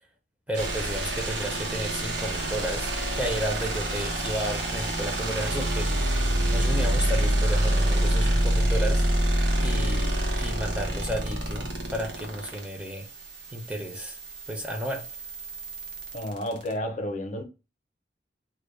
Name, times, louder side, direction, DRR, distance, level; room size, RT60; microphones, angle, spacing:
voice 1, 0.5-6.1 6.5-9.1 9.6-13.1 13.5-14.2 14.5-15.1, equal, 10° right, 0.4 m, -33 dB
sound 1, 0.5-16.7, right 1 dB, 85° right, 0.8 m, -27 dB
voice 2, 16.1-17.4, left 1 dB, 40° left, 0.5 m, -31 dB
2.2 x 2.1 x 3.0 m
head